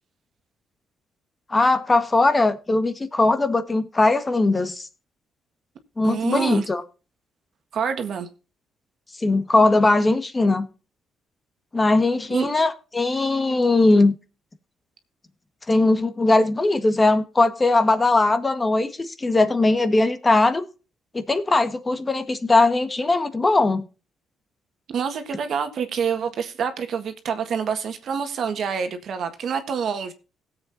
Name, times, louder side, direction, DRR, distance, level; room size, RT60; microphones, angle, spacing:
voice 1, 1.5-4.9 6.0-6.8 9.2-10.7 11.7-14.1 15.7-20.6 21.1-23.8, left 2 dB, 25° left, 1.6 m, -20 dB
voice 2, 6.0-6.7 7.7-8.3 12.3-12.5 24.9-30.1, right 7 dB, 65° right, 1.7 m, -27 dB
17.5 x 7.8 x 2.7 m
cardioid pair, 90°, 0 cm